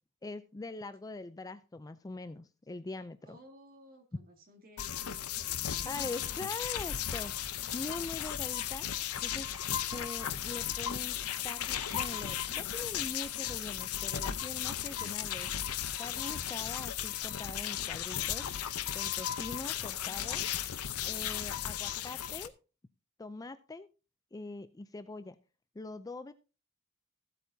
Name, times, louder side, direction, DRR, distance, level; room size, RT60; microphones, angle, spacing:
voice 1, 0.2-3.4 5.9-8.9 9.2-9.5 9.9-11.2 11.4-15.5 16.0-18.5 18.9-20.4 21.0-22.5 23.2-23.9 24.3-25.4 25.8-26.3, left 3 dB, 15° left, 12 dB, 0.4 m, -43 dB
voice 2, 3.2-6.4, equal, 40° right, 3 dB, 2.2 m, -55 dB
sound 1, 4.8-22.5, left 10 dB, 80° left, 0.7 m, -35 dB
15.0 x 8.3 x 2.7 m, 0.32 s
head